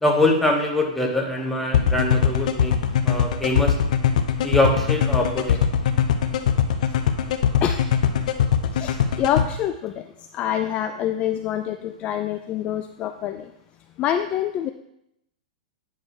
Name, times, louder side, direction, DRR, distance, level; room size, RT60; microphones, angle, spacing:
voice 1, 0.0-2.7 3.0-3.8 4.4-5.6, left 1 dB, 5° left, 0 dB, 1.1 m, -23 dB
sound 1, 1.7-9.4, left 9 dB, 65° left, 0.8 m, -20 dB
voice 2, 8.7-10.1 10.3-13.5 14.0-14.7, left 10 dB, 30° left, 7 dB, 0.4 m, -26 dB
9.0 x 3.3 x 6.3 m, 0.81 s
hypercardioid pair, 140°, 4 cm